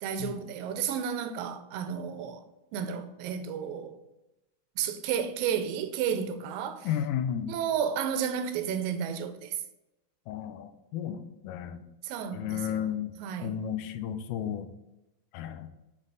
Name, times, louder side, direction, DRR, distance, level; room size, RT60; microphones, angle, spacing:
voice 1, 0.0-2.4 2.7-4.0 4.8-6.9 7.5-9.6 12.0-12.9 13.2-13.6, right 8 dB, 80° right, 2.3 m, -32 dB
voice 2, 6.8-7.5 10.3-11.8 12.3-13.1 13.4-14.7 15.3-15.7, left 9 dB, 85° left, 1.8 m, -33 dB
11.5 x 4.1 x 3.9 m
omnidirectional pair, 4.2 m